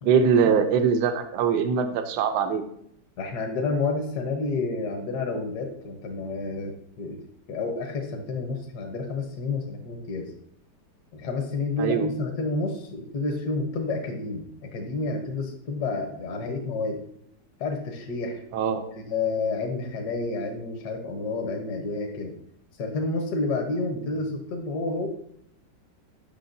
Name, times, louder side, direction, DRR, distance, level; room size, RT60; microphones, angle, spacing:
voice 1, 0.0-2.6 11.8-12.1 18.5-18.8, right 6 dB, 80° right, 7 dB, 1.2 m, -22 dB
voice 2, 3.2-7.2 7.5-10.3 11.1-17.0 17.6-18.4 18.9-22.3 22.8-25.1, left 3 dB, 70° left, 3 dB, 1.4 m, -30 dB
8.5 x 5.7 x 2.6 m, 0.69 s
omnidirectional pair, 1.8 m